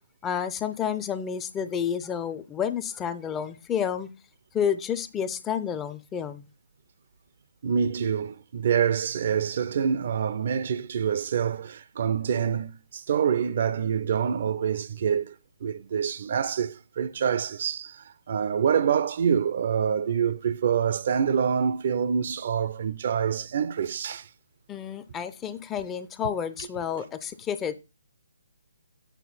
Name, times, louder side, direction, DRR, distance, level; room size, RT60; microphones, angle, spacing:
voice 1, 0.2-4.1 4.5-6.5 24.7-27.7, left 8 dB, 15° left, 0.4 m, -30 dB
voice 2, 7.6-15.3 15.6-24.3, right 7 dB, 50° right, 0.5 m, -26 dB
8.2 x 3.9 x 4.1 m
figure-of-eight pair, 140°, 0 cm